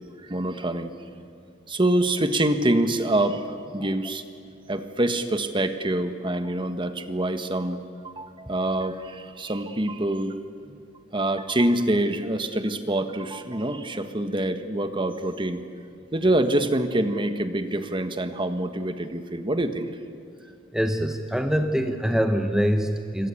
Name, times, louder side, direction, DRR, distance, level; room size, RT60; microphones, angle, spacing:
voice 1, 0.2-0.9 1.7-4.2 4.7-10.4 11.1-15.6 16.1-19.9, right 1 dB, 25° right, 8 dB, 1.4 m, -25 dB
voice 2, 20.7-23.3, equal, 5° right, 5 dB, 1.1 m, -24 dB
27.0 x 24.5 x 8.5 m, 2.6 s
head